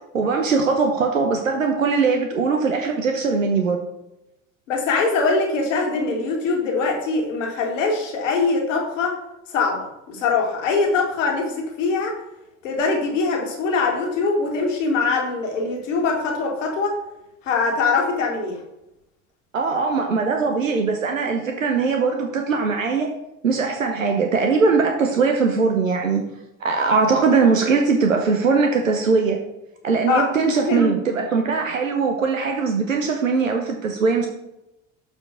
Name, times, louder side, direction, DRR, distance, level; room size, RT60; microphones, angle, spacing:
voice 1, 0.1-3.8 19.5-23.1 23.4-26.2 26.6-29.4 29.8-34.3, right 4 dB, 90° right, 3 dB, 0.8 m, -20 dB
voice 2, 4.7-9.2 9.5-12.1 12.6-17.0 17.4-18.6 30.1-31.0, left 4 dB, 75° left, 1 dB, 1.8 m, -22 dB
7.1 x 5.0 x 5.0 m, 0.90 s
figure-of-eight pair, 55°, 38 cm